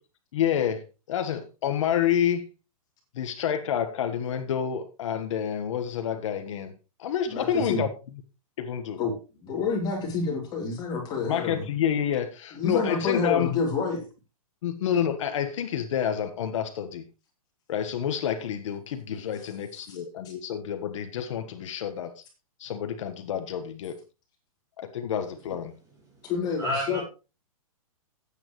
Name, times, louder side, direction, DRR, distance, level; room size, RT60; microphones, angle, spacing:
voice 1, 0.3-2.5 3.1-6.7 7.0-7.9 8.6-9.0 11.3-13.5 14.6-17.0 17.7-22.2 22.6-24.0 24.8-25.7, left 9 dB, 55° left, 8 dB, 1.5 m, -28 dB
voice 2, 7.3-7.8 9.0-9.2 9.4-11.6 12.6-14.0 19.9-20.0 26.2-27.0, left 4 dB, 20° left, 0 dB, 3.7 m, -28 dB
voice 3, 26.1-27.0, equal, 20° right, -1 dB, 6.5 m, -32 dB
15.0 x 9.1 x 3.2 m, 0.31 s
hypercardioid pair, 155°, 18 cm